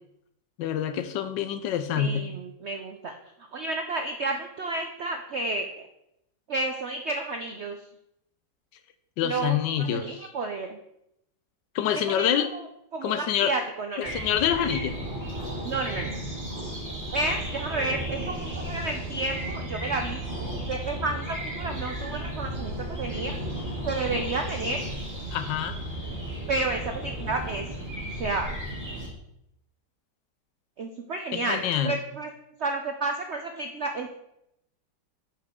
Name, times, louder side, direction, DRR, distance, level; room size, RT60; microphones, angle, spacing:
voice 1, 0.6-2.3 9.2-10.3 11.7-12.5 13.0-13.5 14.0-15.0 25.3-25.8 31.3-32.0, left 9 dB, 80° left, 10 dB, 1.3 m, -26 dB
voice 2, 2.0-3.1 3.5-5.7 6.5-7.8 9.2-10.8 12.1-12.6 12.9-14.2 15.6-16.1 17.1-20.2 20.6-23.4 23.8-24.8 26.5-27.7 28.2-28.5 30.8-32.3 32.6-34.1, right 2 dB, 70° right, 5 dB, 0.6 m, -31 dB
sound 1, 14.0-29.1, right 1 dB, 10° right, 2.2 m, -34 dB
9.1 x 5.7 x 3.6 m, 0.80 s
omnidirectional pair, 1.9 m